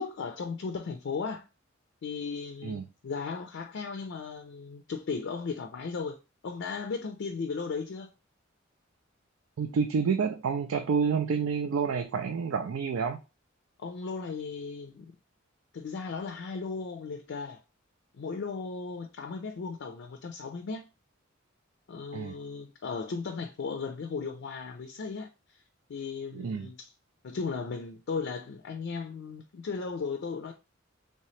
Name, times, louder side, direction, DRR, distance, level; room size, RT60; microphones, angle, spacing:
voice 1, 0.0-1.4 2.0-6.2 6.4-8.1 13.8-15.1 15.7-17.6 18.2-20.9 21.9-25.6 25.9-26.9 27.2-30.5, left 4 dB, 60° left, 0.4 m, -36 dB
voice 2, 9.6-13.2 22.1-22.4 26.3-26.7, right 6 dB, 90° right, 0.4 m, -29 dB
3.3 x 2.8 x 3.1 m
head